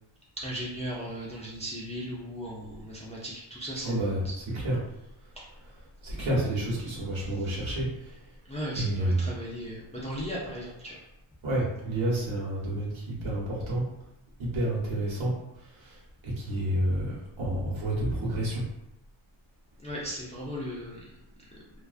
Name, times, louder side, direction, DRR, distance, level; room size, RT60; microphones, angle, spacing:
voice 1, 0.4-4.0 4.2-4.4 6.1-6.3 7.3-7.8 8.4-11.0 19.8-21.0 21.5-21.6, equal, 15° left, -6 dB, 0.3 m, -37 dB
voice 2, 3.8-4.2 4.6-4.8 6.0-8.1 8.8-9.2 11.4-13.8 14.4-15.3 15.8-16.0 16.2-18.6, right 1 dB, 65° right, -5 dB, 1.0 m, -29 dB
2.3 x 2.2 x 2.4 m, 0.86 s
wide cardioid pair, 135°, 50 cm